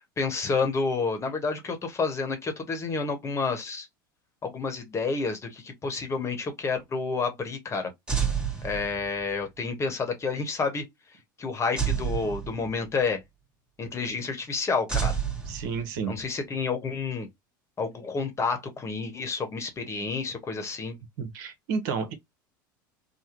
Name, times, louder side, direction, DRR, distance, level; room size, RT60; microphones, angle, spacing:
voice 1, 0.0-3.9 4.4-7.9 8.6-10.9 11.4-13.2 13.8-15.2 16.1-17.3 17.8-21.0, left 4 dB, 25° left, 1.1 m, -29 dB
sound 1, 8.1-9.3 11.8-13.0 14.9-16.2, right 7 dB, 10° right, 1.1 m, -29 dB
voice 2, 15.5-16.2 21.2-22.1, right 5 dB, 65° right, 0.9 m, -31 dB
3.5 x 2.2 x 2.9 m
hypercardioid pair, 85°, 11 cm